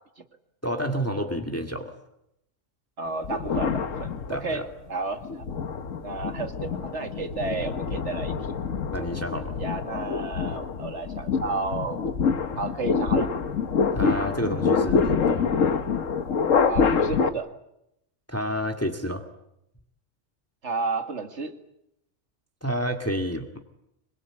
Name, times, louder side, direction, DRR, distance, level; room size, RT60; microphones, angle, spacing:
voice 1, 0.6-1.9 4.3-4.6 8.9-9.5 13.9-15.5 18.3-19.2 22.6-23.6, equal, 10° left, 4 dB, 1.9 m, -29 dB
voice 2, 3.0-5.4 6.0-8.4 9.6-12.0 12.6-13.3 16.7-17.5 20.6-21.6, right 3 dB, 65° right, 7 dB, 2.3 m, -32 dB
sound 1, 3.2-4.7 5.2-17.3, left 5 dB, 85° left, 1.6 m, -26 dB
26.0 x 22.5 x 8.8 m, 0.82 s
omnidirectional pair, 1.3 m